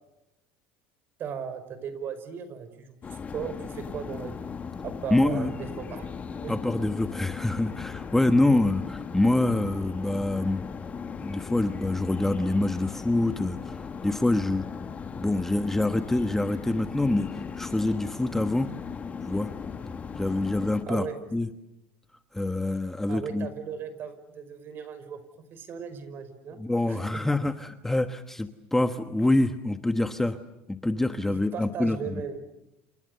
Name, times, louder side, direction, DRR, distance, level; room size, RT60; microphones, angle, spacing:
voice 1, 1.2-4.5 4.8-6.1 6.4-6.6 8.5-8.6 20.9-21.2 23.1-25.2 25.5-26.6 26.9-27.2 31.3-32.4, right 7 dB, 45° right, 12 dB, 5.4 m, -37 dB
sound 1, 3.0-20.8, left 6 dB, 25° left, 1.9 m, -37 dB
voice 2, 5.1-5.5 6.5-10.6 11.2-14.6 15.2-18.7 19.2-19.5 20.2-21.1 21.3-21.5 22.3-23.5 26.6-30.4 30.7-32.0, left 2 dB, 5° left, 8 dB, 1.2 m, -26 dB
29.5 x 29.0 x 6.8 m, 0.90 s
supercardioid pair, 120°, 5 cm